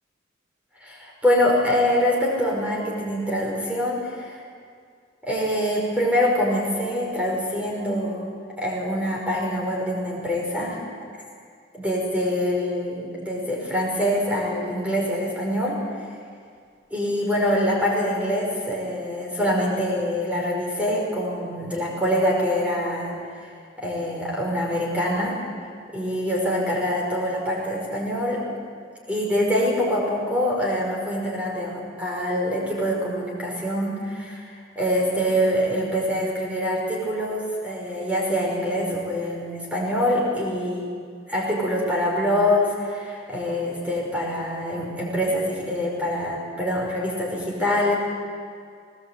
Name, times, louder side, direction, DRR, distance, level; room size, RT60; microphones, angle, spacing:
voice 1, 0.8-4.4 5.2-8.3 8.6-10.8 11.2-11.3 11.7-15.8 16.9-23.5 23.8-25.4 25.9-28.5 29.1-40.9 41.3-47.9, equal, 5° right, -3 dB, 5.4 m, -25 dB
20.0 x 19.0 x 8.4 m, 2.2 s
head